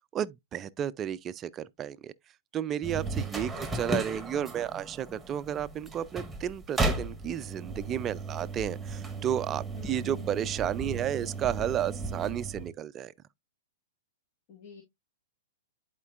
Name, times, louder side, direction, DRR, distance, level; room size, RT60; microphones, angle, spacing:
voice 1, 0.1-2.1 2.5-13.1, right 10 dB, 25° right, 0.4 m, -32 dB
sound 1, 2.8-12.7, right 2 dB, 5° right, 1.4 m, -35 dB
voice 2, 3.4-3.8 9.8-10.3 14.5-14.8, left 9 dB, 50° left, 1.8 m, -48 dB
11.0 x 4.4 x 2.4 m
hypercardioid pair, 125°, 0 cm